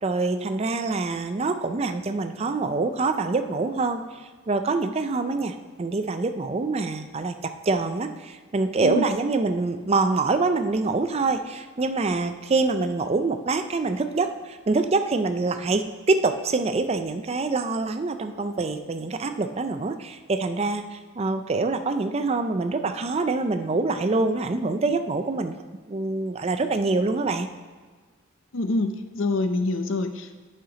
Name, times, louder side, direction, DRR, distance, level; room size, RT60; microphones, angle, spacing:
voice 1, 0.0-4.0 4.5-7.3 7.7-25.6 25.9-27.5, right 3 dB, 30° right, 8 dB, 0.4 m, -25 dB
voice 2, 28.5-30.4, left 2 dB, 65° left, 8 dB, 0.6 m, -26 dB
8.6 x 5.7 x 3.8 m, 1.5 s
head